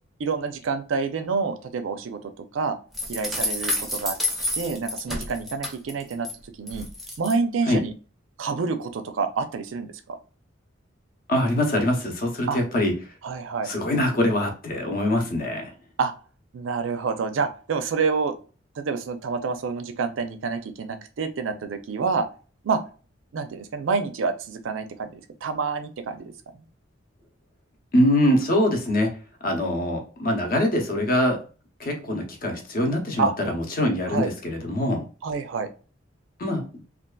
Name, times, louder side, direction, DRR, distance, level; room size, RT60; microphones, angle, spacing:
voice 1, 0.2-2.8 3.1-4.2 4.5-6.3 6.6-6.9 7.2-7.9 8.4-10.2 12.5-12.6 13.2-13.7 16.0-16.1 16.5-18.4 18.8-22.3 22.6-22.8 23.3-26.3 33.2-33.3 34.1-34.3 35.2-35.7, right 5 dB, 85° right, 9 dB, 0.4 m, -27 dB
sound 1, 2.9-6.3 6.7-7.3, left 1 dB, ahead, 0.5 m, -29 dB
voice 2, 11.3-12.9 13.6-15.7 27.9-29.1 29.4-31.4 31.8-35.1 36.4-36.6, left 1 dB, 50° left, 2 dB, 0.7 m, -23 dB
2.6 x 2.3 x 2.2 m, 0.36 s
head